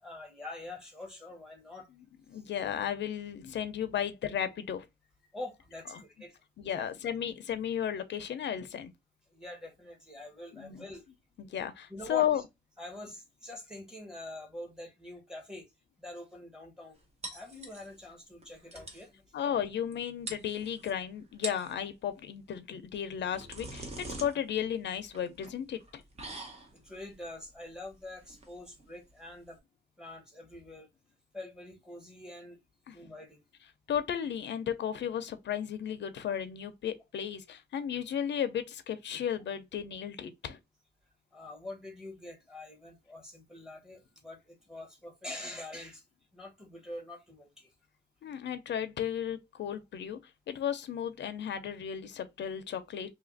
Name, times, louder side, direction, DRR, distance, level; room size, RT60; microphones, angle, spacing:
voice 1, 0.0-1.9 2.4-2.5 5.3-6.4 6.7-6.9 9.3-11.0 11.9-12.4 12.8-15.6 16.0-17.0 17.3-19.2 26.7-29.6 30.0-30.9 31.3-32.6 32.9-33.4 41.3-46.0 46.3-47.7, left 1 dB, 5° right, 1.1 m, -45 dB
voice 2, 2.3-4.9 5.9-6.0 6.6-8.9 10.5-10.8 11.4-12.4 19.3-26.0 32.9-33.0 33.9-40.6 48.2-50.2 50.5-53.1, left 9 dB, 85° left, 0.5 m, -34 dB
sound 1, 17.2-18.1 18.4-18.5 18.7-19.1 19.9-20.0 20.3-20.9 21.3-21.8 22.9-29.6, right 2 dB, 35° right, 0.8 m, -44 dB
2.8 x 2.4 x 3.8 m
wide cardioid pair, 150°, 18 cm